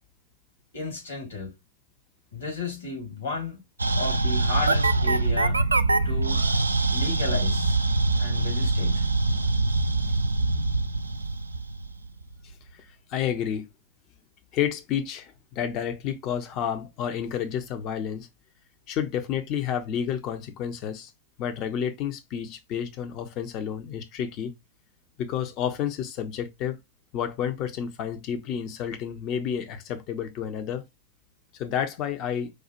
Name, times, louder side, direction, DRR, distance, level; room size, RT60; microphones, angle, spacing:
voice 1, 0.7-1.5 2.3-3.6 4.0-5.6 6.0-6.4 6.9-7.8 8.2-9.1, left 3 dB, 65° left, 2.4 m, -33 dB
sound 1, 3.8-12.3, right 3 dB, 80° right, 0.3 m, -24 dB
voice 2, 12.7-13.7 14.5-18.3 18.9-21.1 21.4-24.5 25.2-26.8 27.1-30.8 31.5-32.5, left 9 dB, 40° left, 0.7 m, -30 dB
4.9 x 2.4 x 2.9 m
figure-of-eight pair, 90°, 0 cm